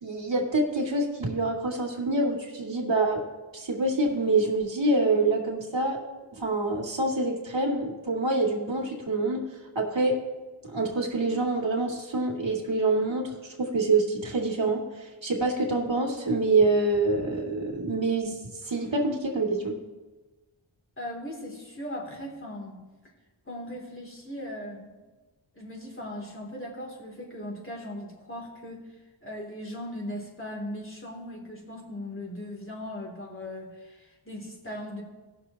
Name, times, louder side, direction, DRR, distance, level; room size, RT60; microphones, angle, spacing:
voice 1, 0.0-3.2 3.5-6.0 6.4-9.5 9.7-10.2 10.6-18.4 18.6-19.8, right 2 dB, 65° right, 0 dB, 2.3 m, -26 dB
voice 2, 21.0-22.8 23.5-25.0 25.5-28.9 29.2-35.0, left 1 dB, 25° left, -2 dB, 2.9 m, -38 dB
18.0 x 6.6 x 2.9 m, 1.2 s
wide cardioid pair, 45°, 48 cm